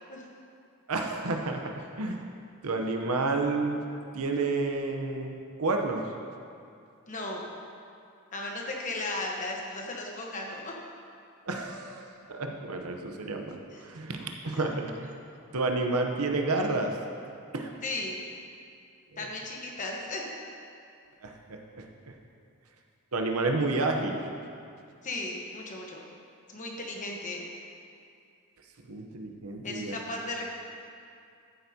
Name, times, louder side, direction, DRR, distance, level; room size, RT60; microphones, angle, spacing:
voice 1, 0.9-1.6 2.0-2.2 2.6-3.9 4.1-6.0 11.5-15.1 15.5-16.9 17.5-17.7 19.1-19.3 21.2-21.8 23.1-24.2 28.9-30.0, right 3 dB, 80° right, 3 dB, 0.9 m, -30 dB
voice 2, 7.1-7.5 8.3-10.7 13.7-13.8 14.6-14.7 17.8-18.2 19.2-20.3 25.0-26.0 26.5-27.4 29.6-30.5, left 2 dB, 35° left, -1 dB, 1.2 m, -35 dB
13.5 x 8.1 x 2.8 m, 2.4 s
head